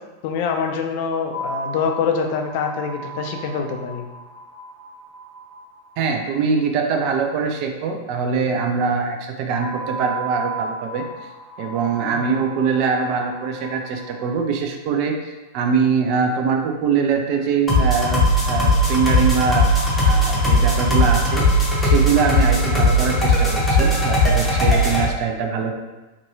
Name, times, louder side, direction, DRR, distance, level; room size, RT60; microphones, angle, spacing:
voice 1, 0.2-4.0 12.1-12.3, left 5 dB, 50° left, 3 dB, 0.3 m, -25 dB
sound 1, 1.3-6.6 9.6-14.3, right 3 dB, 25° right, 1.0 m, -35 dB
voice 2, 6.0-11.0 11.6-19.7 20.0-21.4 21.8-25.7, right 5 dB, 45° right, 3 dB, 0.3 m, -23 dB
sound 2, 17.7-25.1, left 1 dB, 10° left, 0.6 m, -18 dB
2.6 x 2.2 x 2.7 m, 1.1 s
figure-of-eight pair, 90°, 0 cm